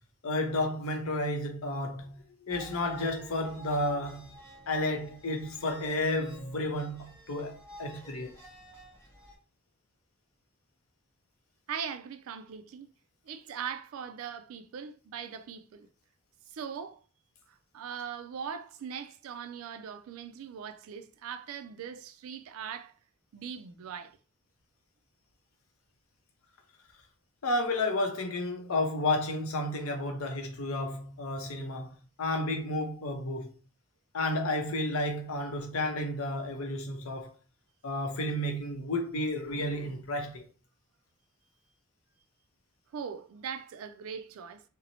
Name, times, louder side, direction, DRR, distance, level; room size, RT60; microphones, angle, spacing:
voice 1, 0.2-4.3 4.7-8.3 27.4-31.9 32.2-33.5 34.1-37.3 37.8-40.5, left 1 dB, 75° left, 0.6 m, -32 dB
sound 1, 2.5-9.3, equal, 10° left, 0.8 m, -50 dB
voice 2, 11.7-12.9 13.2-15.9 16.5-17.0 17.7-22.9 23.3-24.2 42.9-44.6, right 7 dB, 70° right, 0.3 m, -40 dB
2.7 x 2.0 x 2.7 m
head